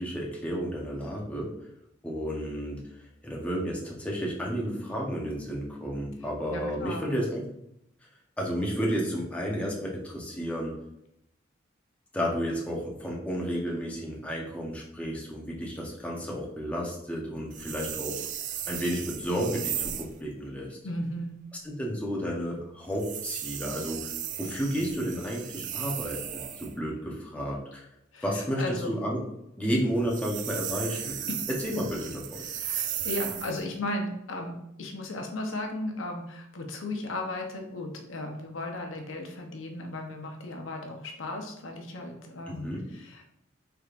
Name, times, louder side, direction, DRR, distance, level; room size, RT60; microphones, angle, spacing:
voice 1, 0.0-1.5 2.0-2.8 3.2-7.4 8.4-10.8 12.1-18.2 18.7-20.8 21.6-24.1 24.4-27.8 28.2-29.2 29.6-31.2 31.5-32.4 42.5-42.9, equal, 5° left, -3 dB, 0.8 m, -32 dB
voice 2, 6.5-7.1 20.8-21.3 28.1-28.9 30.9-31.5 32.4-34.5 34.8-43.2, left 1 dB, 80° left, 2 dB, 0.7 m, -36 dB
sound 1, 17.5-20.2 22.9-26.8 30.0-33.6, right 10 dB, 40° right, 0.3 m, -36 dB
4.7 x 3.4 x 2.5 m, 0.80 s
head